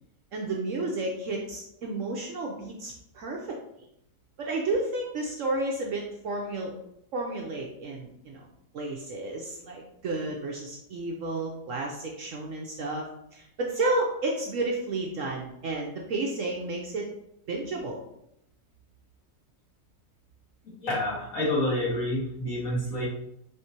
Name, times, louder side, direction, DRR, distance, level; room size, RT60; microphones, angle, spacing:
voice 1, 0.3-3.6 4.4-6.7 7.1-8.5 8.7-13.0 13.3-17.1 17.5-18.0, right 2 dB, 60° right, -1 dB, 0.9 m, -31 dB
voice 2, 20.8-23.1, left 1 dB, 60° left, -8 dB, 2.4 m, -28 dB
4.8 x 3.5 x 2.8 m, 0.77 s
omnidirectional pair, 1.7 m